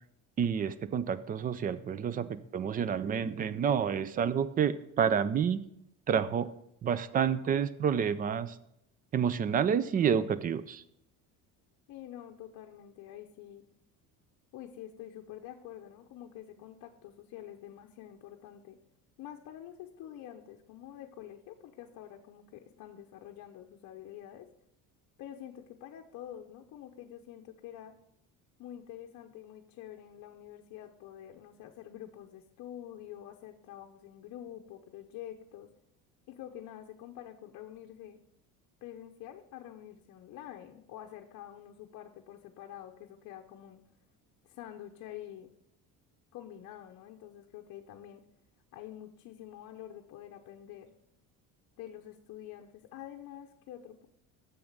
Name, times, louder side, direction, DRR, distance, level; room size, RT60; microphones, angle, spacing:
voice 1, 0.4-5.6 6.1-6.5 6.8-8.6 9.1-10.8, right 7 dB, 25° right, 15 dB, 0.3 m, -29 dB
voice 2, 11.9-13.6 14.5-18.8 19.2-24.5 25.2-27.9 28.6-35.7 36.3-38.2 38.8-43.8 44.4-45.5 46.3-48.2 48.7-50.9 51.8-54.1, left 11 dB, 55° left, 3 dB, 0.8 m, -47 dB
7.1 x 7.0 x 6.5 m, 0.76 s
cardioid pair, 155°, 35 cm